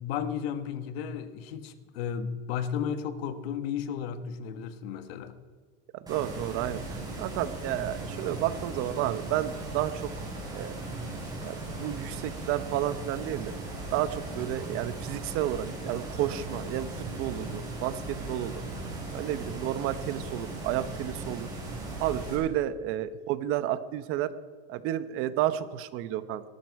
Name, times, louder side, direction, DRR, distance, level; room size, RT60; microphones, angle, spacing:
voice 1, 0.0-5.3, left 8 dB, 80° left, 1.5 m, -34 dB
voice 2, 5.9-10.1 10.5-10.8 11.4-13.5 13.9-18.6 19.1-21.5 22.0-24.3 24.7-26.4, right 12 dB, 45° right, 1.0 m, -31 dB
sound 1, 6.1-22.4, right 2 dB, 15° right, 5.4 m, -38 dB
18.5 x 14.0 x 4.8 m
cardioid pair, 160°, 30 cm